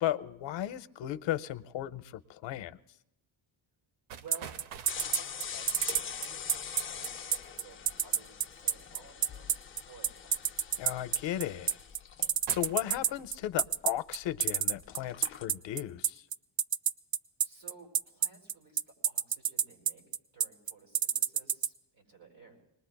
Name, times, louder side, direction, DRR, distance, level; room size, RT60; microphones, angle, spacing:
voice 1, 0.0-2.8 10.8-11.7 12.5-16.2, left 12 dB, 65° left, 14 dB, 0.7 m, -35 dB
voice 2, 4.1-6.4 6.9-10.4 17.4-20.0 20.3-22.6, right 3 dB, 70° right, -1 dB, 5.0 m, -55 dB
sound 1, 4.1-7.6 8.7-9.2 10.0-10.2 10.7-11.1 11.6-12.1 12.5-13.5, right 8 dB, 90° right, 0.7 m, -49 dB
sound 2, 4.3-21.7, right 9 dB, 50° right, 0.4 m, -28 dB
sound 3, 4.9-14.4 14.7-15.5, left 7 dB, 25° left, 0.5 m, -44 dB
25.5 x 20.0 x 2.3 m, 0.88 s
cardioid pair, 120°, 48 cm